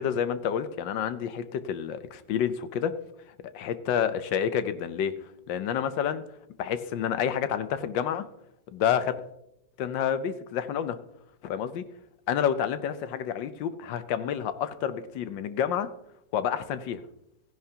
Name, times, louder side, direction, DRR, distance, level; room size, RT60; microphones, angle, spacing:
voice 1, 0.0-2.9 3.5-5.1 5.5-6.2 6.6-8.2 8.7-9.2 9.8-11.0 11.4-11.8 12.3-15.9 16.3-17.0, left 8 dB, 75° left, 12 dB, 1.4 m, -29 dB
15.0 x 10.5 x 2.8 m, 0.79 s
omnidirectional pair, 2.1 m